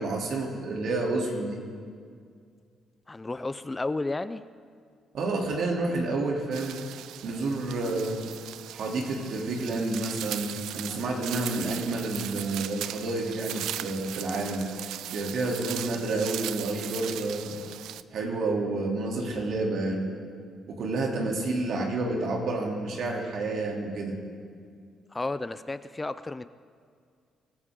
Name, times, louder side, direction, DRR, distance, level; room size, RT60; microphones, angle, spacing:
voice 1, 0.0-1.6 5.1-6.8 7.2-8.3 8.7-14.7 15.1-17.6 18.1-20.1 20.7-24.2, right 2 dB, 70° right, 0 dB, 3.0 m, -29 dB
voice 2, 3.1-4.4 25.1-26.5, left 2 dB, 20° left, 13 dB, 0.5 m, -32 dB
sound 1, 6.5-18.0, right 12 dB, 85° right, 0.4 m, -38 dB
24.5 x 14.5 x 3.8 m, 2.1 s
cardioid pair, 90°, 0 cm